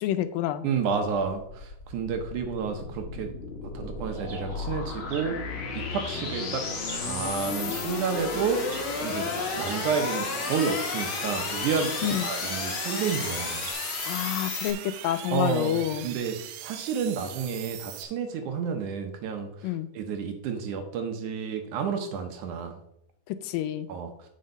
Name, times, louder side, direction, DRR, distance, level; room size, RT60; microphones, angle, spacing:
voice 1, 0.0-0.7 12.0-12.3 14.1-16.1 19.6-19.9 23.4-23.9, left 11 dB, 80° left, 12 dB, 2.2 m, -28 dB
voice 2, 0.6-3.3 3.7-5.4 5.7-6.6 6.9-8.6 9.0-13.7 15.3-22.7 23.9-24.1, right 6 dB, 70° right, 6 dB, 2.1 m, -30 dB
sound 1, 1.4-14.7, left 4 dB, 55° left, 1.5 m, -33 dB
Chirp tweet, 4.0-13.7, right 4 dB, 45° right, 1.4 m, -48 dB
sound 2, 5.6-18.0, right 10 dB, 90° right, 2.5 m, -42 dB
8.1 x 5.7 x 5.2 m, 0.76 s
omnidirectional pair, 4.1 m